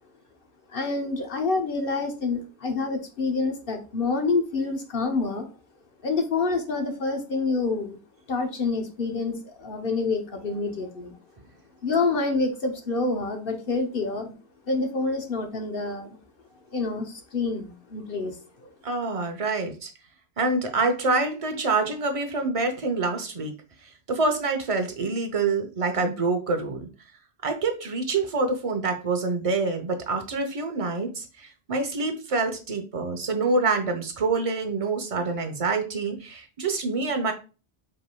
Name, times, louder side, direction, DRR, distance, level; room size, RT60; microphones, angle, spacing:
voice 1, 0.7-5.5 6.0-8.0 8.3-11.2 11.8-14.3 14.7-16.2 16.7-18.7, left 3 dB, 55° left, 4 dB, 1.0 m, -27 dB
voice 2, 18.8-19.9 20.4-23.6 24.1-26.9 27.4-37.3, right 3 dB, 35° right, 5 dB, 0.8 m, -26 dB
5.5 x 3.5 x 2.3 m, 0.33 s
omnidirectional pair, 1.2 m